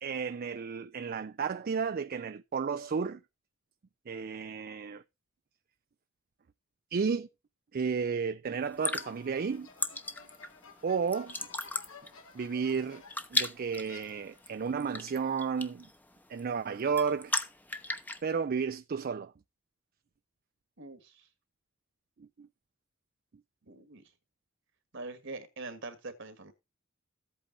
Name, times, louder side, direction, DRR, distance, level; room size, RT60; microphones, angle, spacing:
voice 1, 0.0-3.2 4.1-5.0 6.9-7.3 7.7-9.7 10.8-11.4 12.3-13.0 13.3-15.9 16.3-17.3 18.2-19.3 22.2-22.5, right 5 dB, 45° right, 0.4 m, -32 dB
sound 1, 8.6-18.2, left 2 dB, 10° left, 0.8 m, -37 dB
sound 2, 9.0-13.4 13.9-14.6, left 5 dB, 85° left, 2.1 m, -54 dB
voice 2, 20.8-21.3 23.7-24.0 24.9-26.5, right 3 dB, 65° right, 1.8 m, -43 dB
14.0 x 8.4 x 2.6 m
head